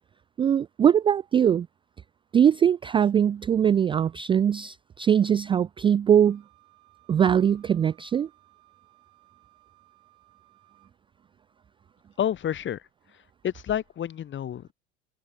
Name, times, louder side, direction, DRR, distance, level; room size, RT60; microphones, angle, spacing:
voice 1, 0.4-1.7 2.3-6.4 7.1-8.3, right 8 dB, 15° right, 0.4 m, -21 dB
Wind instrument woodwind instrument, 6.2-11.0, right 23 dB, 60° right, 6.2 m, -61 dB
voice 2, 12.2-12.8 13.4-14.7, left 10 dB, 30° left, 1.9 m, -29 dB
figure-of-eight pair, 75°, 37 cm